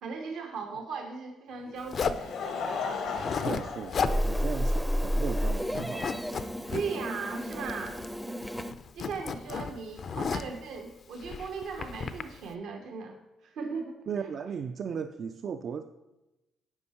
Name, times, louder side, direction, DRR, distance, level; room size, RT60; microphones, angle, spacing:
voice 1, 0.0-2.3 6.7-8.0 8.9-14.3, right 5 dB, 75° right, 3 dB, 0.9 m, -38 dB
Laughter, 1.6-4.9 5.7-5.8 7.2-7.3, left 5 dB, 75° left, 1.1 m, -36 dB
Zipper (clothing), 1.9-2.3 3.0-3.6 3.9-4.2 4.5-4.6 5.0-5.4 5.7-6.8 7.5-8.2 8.4-10.6 11.2-12.2, left 6 dB, 50° left, 0.5 m, -33 dB
voice 2, 3.4-6.2 14.1-15.9, right 6 dB, 55° right, 8 dB, 0.4 m, -36 dB
Meow, 4.0-8.7, equal, ahead, 0.5 m, -31 dB
9.6 x 5.5 x 4.2 m, 0.98 s
cardioid pair, 90°, 0 cm